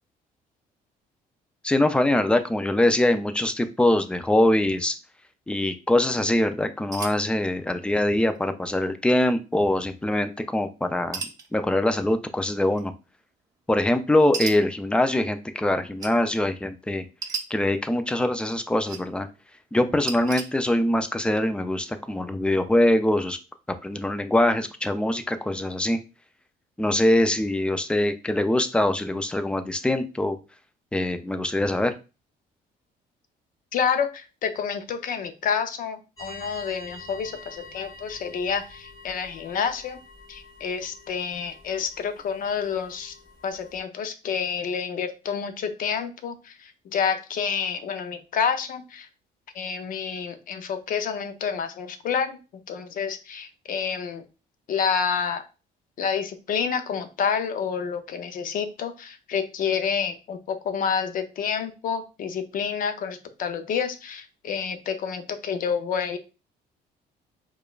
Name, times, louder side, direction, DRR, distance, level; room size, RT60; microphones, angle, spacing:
voice 1, 1.6-4.9 5.5-11.2 11.5-12.9 13.7-17.0 17.5-19.3 19.7-23.4 23.8-26.0 26.8-30.4 30.9-32.0, left 1 dB, 5° left, 9 dB, 0.4 m, -23 dB
sound 1, 6.9-7.2 8.3-8.4 8.7-9.0 11.1-11.5 12.7-12.8 14.3-14.6 16.0-16.1 17.2-17.4 18.5-19.0 20.1-20.5, right 5 dB, 20° right, 0.7 m, -33 dB
voice 2, 33.7-40.0 40.3-43.1 43.4-49.1 49.5-52.4 52.7-54.2 54.7-55.4 56.0-66.2, left 6 dB, 55° left, 8 dB, 0.6 m, -28 dB
sound 2, 36.2-43.8, left 2 dB, 20° left, 1.5 m, -46 dB
4.8 x 2.3 x 2.3 m, 0.31 s
cardioid pair, 110°, 17 cm